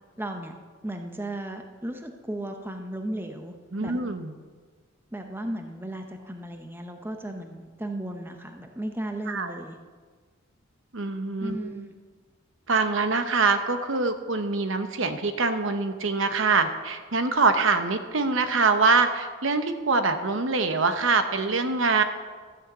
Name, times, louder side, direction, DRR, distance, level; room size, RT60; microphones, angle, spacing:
voice 1, 0.2-0.5 0.8-3.5 3.8-3.9 5.1-9.8 11.4-11.9, right 1 dB, 10° right, 5 dB, 0.8 m, -35 dB
voice 2, 3.7-4.3 9.3-9.6 10.9-11.7 12.7-22.0, right 4 dB, 65° right, 8 dB, 0.9 m, -24 dB
13.5 x 6.4 x 8.0 m, 1.5 s
head